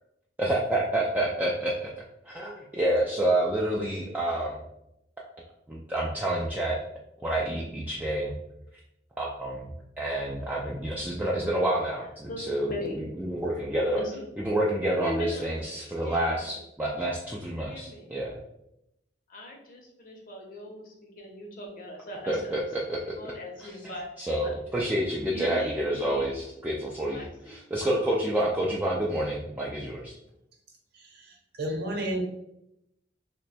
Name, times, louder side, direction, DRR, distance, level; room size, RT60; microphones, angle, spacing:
voice 1, 0.4-1.9 2.2-4.6 5.7-6.8 7.2-8.4 9.2-9.7 10.0-14.0 14.4-18.4 22.3-23.0 23.6-23.8 24.2-30.1, right 1 dB, 10° right, -4 dB, 0.3 m, -28 dB
voice 2, 12.7-13.0 13.9-14.2 15.0-15.7 16.0-16.6 17.6-18.1 19.3-22.7 23.2-24.1 24.4-24.5 25.3-26.5 27.0-27.6, left 1 dB, 50° left, 0 dB, 0.8 m, -40 dB
voice 3, 30.9-32.2, right 1 dB, 65° right, 1 dB, 0.7 m, -32 dB
2.9 x 2.2 x 4.1 m, 0.84 s
head